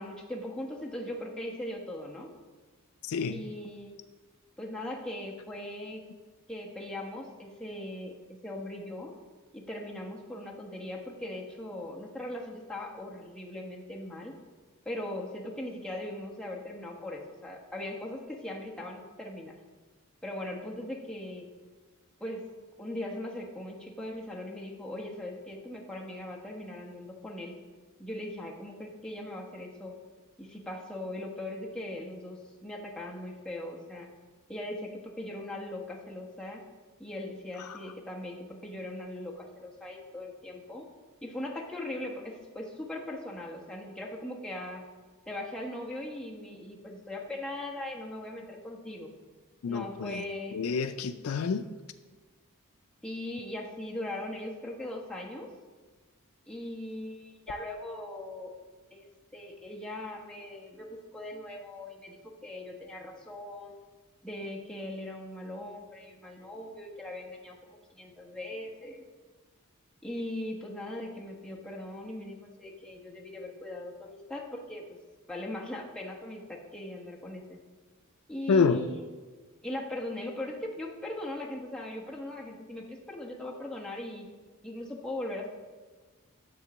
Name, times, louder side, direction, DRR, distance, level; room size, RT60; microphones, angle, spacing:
voice 1, 0.0-2.3 3.3-3.9 4.6-6.0 6.5-8.1 8.4-9.1 9.5-14.4 14.8-19.6 20.2-21.5 22.2-22.4 22.8-27.5 28.0-30.0 30.4-34.1 34.5-36.6 37.0-40.9 41.2-44.8 45.3-49.1 49.6-50.6 53.0-55.5 56.5-58.5 58.9-59.0 59.3-63.7 64.2-69.1 70.0-75.0 75.3-77.6 78.3-79.0 79.6-84.3 84.6-85.5, left 1 dB, 5° left, -2 dB, 1.1 m, -39 dB
voice 2, 3.0-3.4 37.7-37.8 49.6-50.2 50.5-51.7 78.5-78.8, left 5 dB, 70° left, 10 dB, 0.4 m, -27 dB
10.0 x 3.7 x 7.1 m, 1.4 s
head